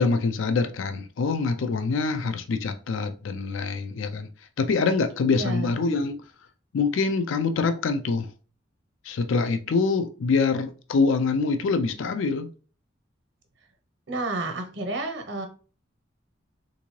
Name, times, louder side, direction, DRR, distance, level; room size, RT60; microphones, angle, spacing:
voice 1, 0.0-4.3 4.6-6.2 6.7-8.3 9.1-12.5, left 4 dB, 80° left, 0.4 m, -25 dB
voice 2, 5.3-5.7 14.1-15.5, right 2 dB, 60° right, 0.8 m, -30 dB
3.6 x 2.6 x 3.0 m
head